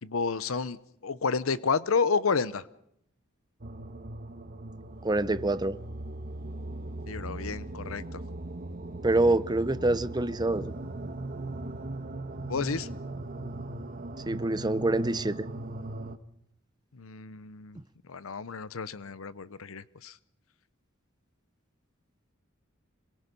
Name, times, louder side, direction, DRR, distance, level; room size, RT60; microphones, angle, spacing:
voice 1, 0.0-2.6 7.1-8.2 12.5-12.9 16.9-17.8 18.1-20.2, left 5 dB, 85° left, 0.8 m, -30 dB
sound 1, 3.6-16.2, right 2 dB, 45° right, 1.2 m, -39 dB
voice 2, 5.0-5.8 9.0-10.7 14.3-15.5, right 2 dB, 20° right, 0.8 m, -26 dB
27.0 x 22.0 x 5.4 m
head